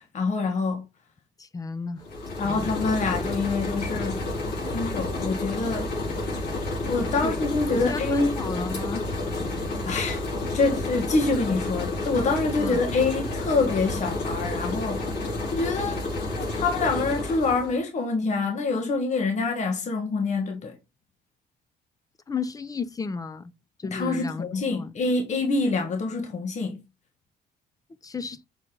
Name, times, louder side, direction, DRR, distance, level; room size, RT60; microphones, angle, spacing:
voice 1, 0.1-0.8 2.4-4.3 4.7-5.9 6.9-8.3 9.8-10.2 10.5-16.0 16.3-20.7 23.9-26.8, left 3 dB, 45° left, 1.5 m, -26 dB
voice 2, 1.4-2.0 2.4-2.7 7.2-7.4 7.7-9.1 12.6-12.8 22.3-23.5 23.8-25.0 28.0-28.4, left 4 dB, 20° left, 0.6 m, -33 dB
sound 1, 2.0-17.8, left 2 dB, 70° left, 4.2 m, -30 dB
6.4 x 4.2 x 3.8 m
cardioid pair, 110°, 17 cm